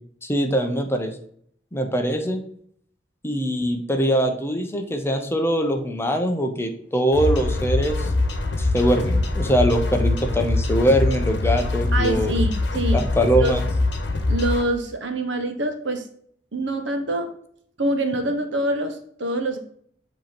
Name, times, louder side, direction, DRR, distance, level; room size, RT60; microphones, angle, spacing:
voice 1, 0.2-1.1 1.7-2.4 3.2-8.1 8.6-12.3 12.9-13.6, equal, 15° left, 5 dB, 0.7 m, -22 dB
sound 1, 7.1-14.6, left 2 dB, 70° left, 1.1 m, -23 dB
voice 2, 11.9-13.0 13.4-13.6 14.3-16.0 16.5-17.3 17.8-19.6, right 1 dB, 75° right, 5 dB, 1.1 m, -25 dB
7.8 x 3.0 x 5.8 m, 0.64 s
head